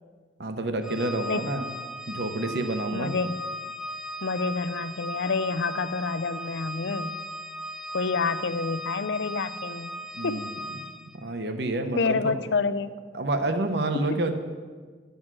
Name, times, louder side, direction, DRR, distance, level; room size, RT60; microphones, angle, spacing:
voice 1, 0.4-1.7 2.1-3.1 10.1-10.6 11.2-12.3 13.1-14.3, right 2 dB, 65° right, 7 dB, 0.8 m, -28 dB
Organ, 0.8-11.2, equal, 5° right, 0.4 m, -37 dB
voice 2, 2.9-3.4 4.2-7.2 7.9-9.9 10.2-10.5 12.0-13.0 13.9-14.2, left 4 dB, 75° left, 13 dB, 0.5 m, -28 dB
11.0 x 8.0 x 6.1 m, 1.5 s
head